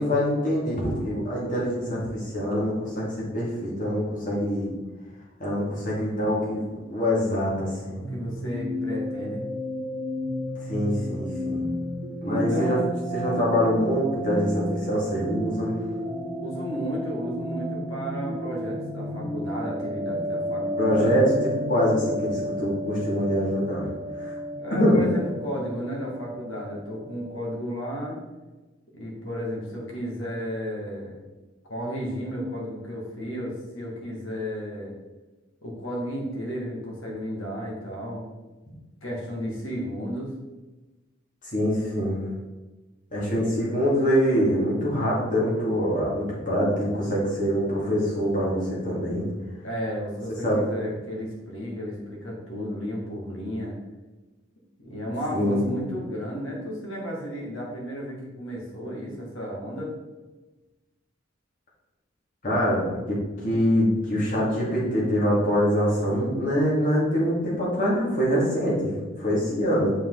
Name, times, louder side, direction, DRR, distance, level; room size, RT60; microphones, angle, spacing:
voice 1, 0.0-4.7 5.4-8.0 10.7-11.6 12.2-12.8 13.1-15.8 20.8-21.3 21.7-23.9 24.2-24.3 24.7-25.0 41.5-42.2 43.1-49.3 50.4-50.6 55.3-55.7 62.4-63.2 63.4-69.9, equal, 40° left, -5 dB, 2.5 m, -24 dB
voice 2, 7.9-9.4 12.2-12.7 16.4-21.3 24.6-28.2 28.9-31.2 31.6-35.0 35.6-38.2 39.0-40.3 43.2-43.6 49.6-53.8 54.8-60.0, equal, 80° left, -2 dB, 2.1 m, -33 dB
sound 1, 8.0-27.5, equal, 80° right, 1.0 m, -32 dB
7.2 x 5.2 x 4.0 m, 1.2 s
head